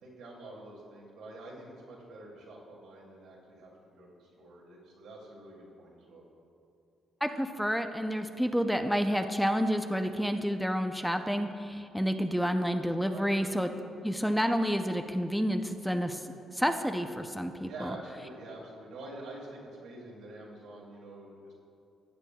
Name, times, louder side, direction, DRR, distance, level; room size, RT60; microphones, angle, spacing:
voice 1, 0.0-6.2 13.1-13.5 17.7-21.5, right 2 dB, 90° right, -4 dB, 2.4 m, -47 dB
voice 2, 7.2-13.7 14.0-16.2 16.5-18.0, equal, ahead, 6 dB, 0.5 m, -29 dB
15.5 x 8.8 x 2.3 m, 2.6 s
cardioid pair, 90°, 0 cm